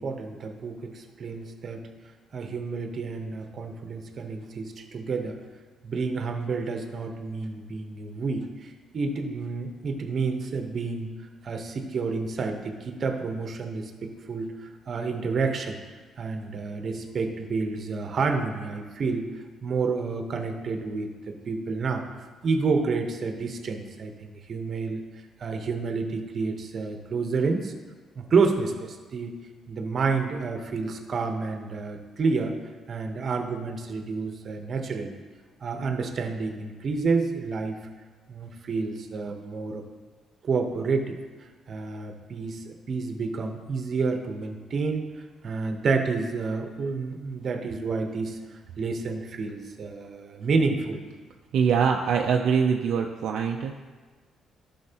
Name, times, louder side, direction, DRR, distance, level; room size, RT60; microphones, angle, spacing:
voice 1, 0.0-1.8 2.3-5.4 5.8-11.1 11.4-15.8 16.2-19.3 19.6-22.0 22.4-25.0 25.4-27.7 28.2-29.3 29.7-32.6 32.9-35.2 35.6-37.8 38.3-39.8 40.4-41.2 41.7-45.1 45.4-48.4 48.8-51.0, right 4 dB, 50° right, 5 dB, 1.0 m, -29 dB
voice 2, 51.5-53.8, right 6 dB, 75° right, 2 dB, 0.5 m, -23 dB
12.0 x 5.8 x 2.9 m, 1.4 s
cardioid pair, 90°, 0 cm